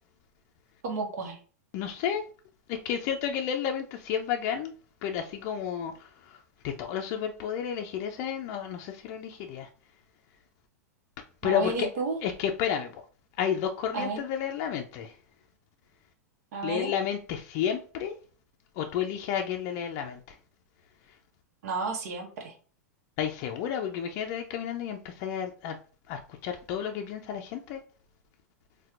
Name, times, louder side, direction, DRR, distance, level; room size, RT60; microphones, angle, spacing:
voice 1, 0.8-1.4 11.4-12.2 13.9-14.3 16.5-16.9 21.6-22.5, right 4 dB, 65° right, 0.8 m, -32 dB
voice 2, 1.7-2.2 2.7-4.7 5.0-6.4 6.6-9.7 11.4-11.9 12.2-12.9 13.4-15.1 16.6-18.1 18.8-20.2 23.2-25.8 26.1-27.8, left 8 dB, 45° left, 0.4 m, -31 dB
4.1 x 2.2 x 2.4 m
hypercardioid pair, 110°, 9 cm